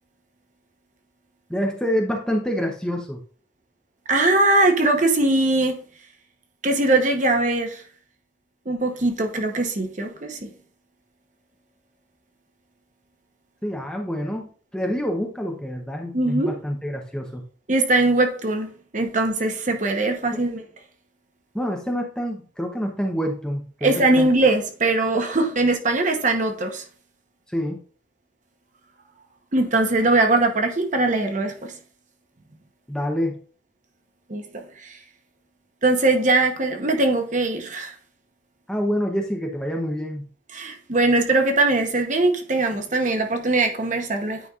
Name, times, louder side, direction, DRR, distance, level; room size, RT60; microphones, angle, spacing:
voice 1, 1.5-3.2 13.6-17.4 20.3-20.4 21.5-24.3 27.5-27.8 32.9-33.4 38.7-40.3, equal, 5° left, 0.7 m, -27 dB
voice 2, 4.1-5.7 6.6-7.8 8.7-10.5 16.1-16.5 17.7-18.7 18.9-20.6 23.8-26.8 29.5-31.7 34.3-34.4 34.8-35.0 35.8-37.9 40.5-44.4, right 2 dB, 40° right, 0.9 m, -21 dB
9.4 x 5.2 x 2.4 m
head